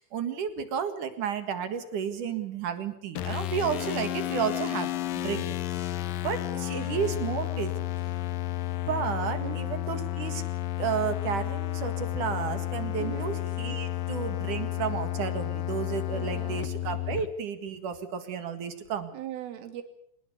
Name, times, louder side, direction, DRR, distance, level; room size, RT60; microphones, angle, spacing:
voice 1, 0.0-5.6 6.2-7.9 8.9-10.4 10.8-19.1, right 7 dB, 55° right, 9 dB, 2.5 m, -32 dB
sound 1, 3.2-17.3, left 14 dB, 85° left, 2.0 m, -32 dB
voice 2, 13.0-13.3 16.1-16.6 19.1-19.8, right 12 dB, 80° right, 8 dB, 5.0 m, -39 dB
26.0 x 20.0 x 6.9 m, 0.70 s
omnidirectional pair, 5.7 m